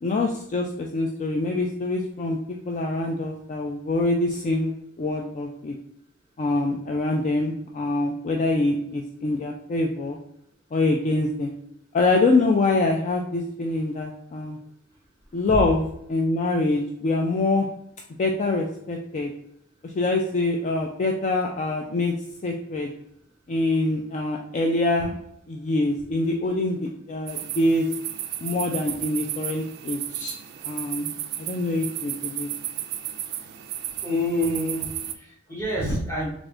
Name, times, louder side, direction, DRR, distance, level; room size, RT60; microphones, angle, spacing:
voice 1, 0.0-2.4 2.7-4.7 5.0-5.8 6.4-10.2 10.7-11.5 11.9-14.6 15.3-17.7 18.2-19.3 19.8-22.1 22.4-22.9 23.5-25.2 25.5-27.9 28.4-30.4 30.6-31.1 31.4-32.5, left 2 dB, 35° left, 1 dB, 0.3 m, -25 dB
sound 1, 27.3-35.1, right 12 dB, 50° right, 0.3 m, -34 dB
voice 2, 34.0-36.3, left 1 dB, 15° left, -4 dB, 0.9 m, -27 dB
3.4 x 2.5 x 3.6 m, 0.78 s
head